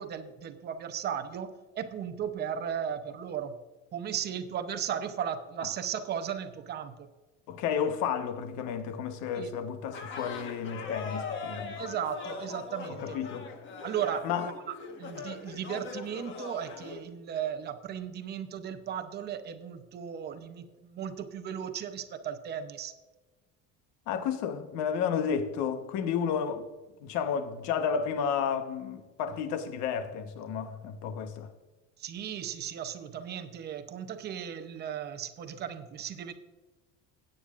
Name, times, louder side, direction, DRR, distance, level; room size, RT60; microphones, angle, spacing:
voice 1, 0.0-3.6 3.9-7.1 9.3-9.5 11.8-13.2 13.8-22.9 32.0-36.3, right 8 dB, 35° right, 0.7 m, -36 dB
voice 2, 7.5-11.8 13.0-13.5 14.2-14.5 24.1-26.7 27.0-31.5, left 7 dB, 70° left, 1.1 m, -32 dB
sound 1, 9.9-17.0, left 5 dB, 40° left, 1.3 m, -40 dB
17.0 x 8.8 x 2.5 m
cardioid pair, 170°, 30 cm